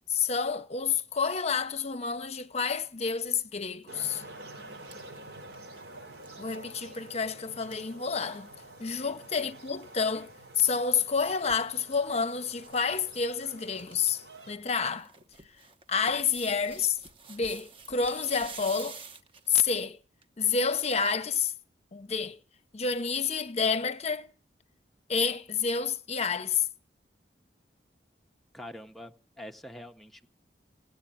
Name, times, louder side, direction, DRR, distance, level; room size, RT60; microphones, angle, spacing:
voice 1, 0.1-4.2 6.4-8.5 8.8-15.1 15.9-17.0 17.3-19.0 19.5-20.0 20.4-21.5 21.9-22.4 22.7-24.3 25.1-26.7, left 5 dB, 40° left, 0.8 m, -29 dB
sound 1, 3.8-4.0 4.4-8.7 9.0-9.1 9.2-9.5 10.8-11.7 12.3-12.8 13.0-13.1 13.5-14.1 14.5-19.7 20.2-20.3, right 5 dB, 30° right, 1.0 m, -49 dB
sound 2, 3.9-14.6, right 2 dB, 90° right, 6.0 m, -48 dB
voice 2, 28.5-30.3, left 1 dB, ahead, 0.7 m, -45 dB
17.5 x 8.3 x 8.8 m
head